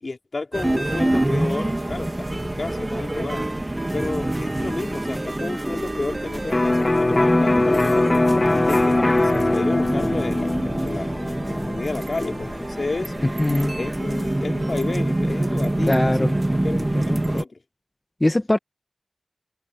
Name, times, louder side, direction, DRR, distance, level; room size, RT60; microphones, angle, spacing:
voice 1, 0.0-3.4 3.9-8.1 8.5-13.1 13.8-17.6, left 3 dB, 75° left, 3.4 m, -31 dB
sound 1, 0.5-17.4, right 1 dB, 30° right, 2.0 m, -26 dB
Electric guitar, 6.5-14.2, left 2 dB, 50° left, 2.0 m, -22 dB
voice 2, 13.4-13.7 15.9-16.3 18.2-18.6, left 1 dB, 25° left, 1.1 m, -20 dB
wide cardioid pair, 50°, 0 cm